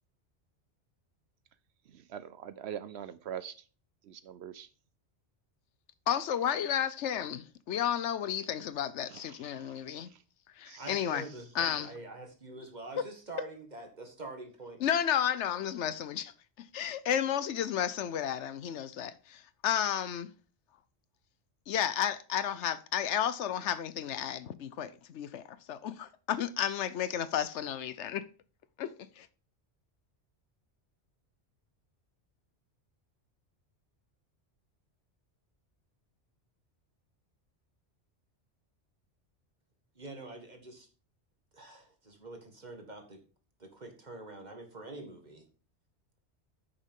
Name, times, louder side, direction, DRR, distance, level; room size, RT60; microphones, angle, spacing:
voice 1, 2.1-3.5 4.1-4.7 10.7-10.8, right 9 dB, 70° right, 0.8 m, -41 dB
voice 2, 6.1-10.1 10.6-11.2 11.5-11.9 14.8-16.3 16.7-20.3 21.7-28.2 28.8-29.3, left 9 dB, 85° left, 1.0 m, -32 dB
voice 3, 10.8-14.8 40.0-40.9 41.5-43.2 43.6-45.5, right 2 dB, 40° right, 1.9 m, -45 dB
9.8 x 6.6 x 3.7 m
omnidirectional pair, 1.2 m